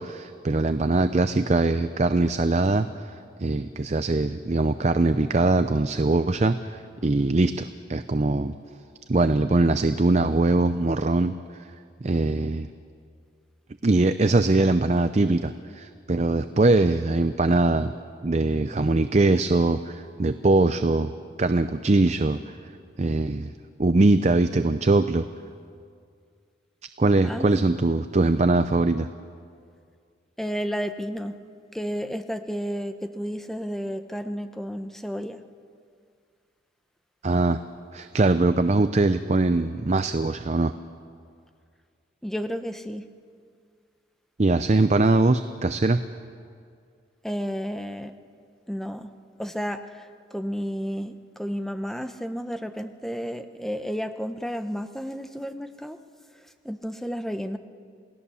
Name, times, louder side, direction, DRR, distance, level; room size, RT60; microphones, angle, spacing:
voice 1, 0.0-8.5 9.1-11.4 12.0-12.7 13.8-17.9 18.2-21.1 21.4-22.6 23.0-23.5 23.8-25.2 27.0-29.1 37.2-37.6 37.9-40.7 44.4-46.0, right 2 dB, 35° right, 10 dB, 0.5 m, -22 dB
voice 2, 27.2-27.6 30.4-31.3 31.7-35.4 42.2-43.0 47.2-48.1 48.7-49.1 49.4-56.0 56.6-57.6, equal, ahead, 8 dB, 0.8 m, -32 dB
28.5 x 18.0 x 7.0 m, 2.2 s
head